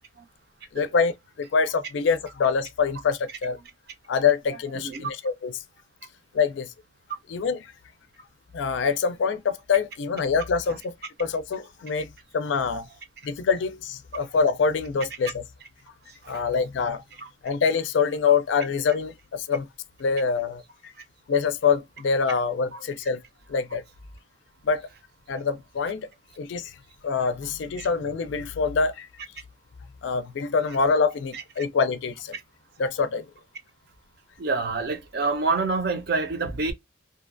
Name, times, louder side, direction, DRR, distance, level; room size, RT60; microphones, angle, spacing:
voice 1, 0.7-1.1 1.4-3.6 4.1-5.6 6.3-6.7 7.3-7.7 8.5-10.9 11.2-12.8 13.2-15.4 16.3-17.0 17.4-19.7 20.0-20.9 21.3-23.2 23.5-23.8 24.6-24.9 25.3-26.1 26.4-26.8 27.0-29.1 30.0-32.3 32.8-33.3, left 5 dB, 75° left, 0.4 m, -25 dB
voice 2, 4.7-5.1 16.2-16.4 17.2-17.3 22.3-22.4 22.7-22.8 27.8-27.9 31.3-31.4 34.4-36.7, right 3 dB, 55° right, 0.5 m, -27 dB
2.7 x 2.2 x 2.4 m
head